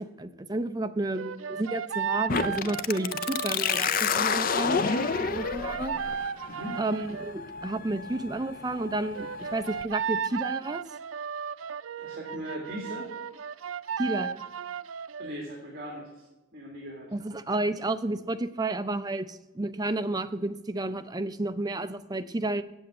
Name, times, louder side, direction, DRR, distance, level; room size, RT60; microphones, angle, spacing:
voice 1, 0.0-5.9 6.8-10.8 14.0-14.4 17.1-22.6, right 2 dB, 20° right, 11 dB, 0.5 m, -31 dB
sound 1, 1.1-7.3 9.1-15.3, right 7 dB, 85° right, 0.4 m, -35 dB
sound 2, 2.3-9.8, left 6 dB, 45° left, 0.4 m, -30 dB
voice 2, 6.5-6.8 12.0-13.1 15.2-16.2 16.5-17.1, equal, 50° right, 0 dB, 2.1 m, -39 dB
8.0 x 7.8 x 8.5 m, 1.0 s
head